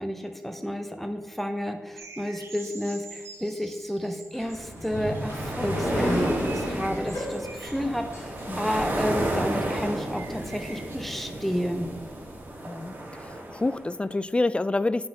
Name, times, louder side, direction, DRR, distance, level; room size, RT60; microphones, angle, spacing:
voice 1, 0.0-12.0, equal, 5° left, 6 dB, 0.8 m, -31 dB
sound 1, 2.0-11.0, right 3 dB, 60° right, 1.5 m, -47 dB
sound 2, 4.3-9.0, equal, 60° left, 2.8 m, -32 dB
sound 3, 4.7-13.9, right 1 dB, 35° right, 2.9 m, -33 dB
voice 2, 12.7-15.1, left 2 dB, 20° left, 16 dB, 0.4 m, -28 dB
8.6 x 6.0 x 4.4 m, 1.1 s
cardioid pair, 60°, 5 cm